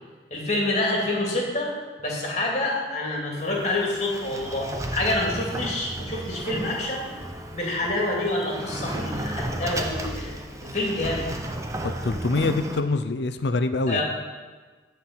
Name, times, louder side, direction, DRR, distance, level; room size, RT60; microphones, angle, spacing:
voice 1, 0.3-1.7 2.0-7.1 7.5-10.3 10.6-11.3 13.9-14.0, left 2 dB, 40° left, -2 dB, 2.5 m, -27 dB
Sliding door, 3.4-12.8, right 1 dB, 15° right, 0.7 m, -34 dB
voice 2, 11.8-14.0, left 3 dB, 70° left, 10 dB, 0.6 m, -25 dB
10.5 x 4.6 x 7.5 m, 1.4 s
head